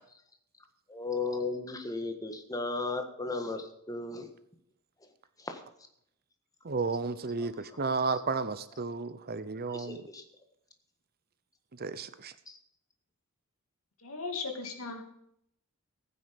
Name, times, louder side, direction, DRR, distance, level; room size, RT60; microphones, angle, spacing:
voice 1, 0.9-4.3 5.4-5.6 7.4-7.5 9.7-10.2 12.5-12.6, left 3 dB, 15° left, 5 dB, 1.6 m, -35 dB
voice 2, 6.6-10.0 11.8-12.3, right 4 dB, 45° right, 13 dB, 0.8 m, -32 dB
voice 3, 14.0-15.0, left 4 dB, 65° left, 4 dB, 2.7 m, -37 dB
15.5 x 9.5 x 5.2 m, 0.72 s
head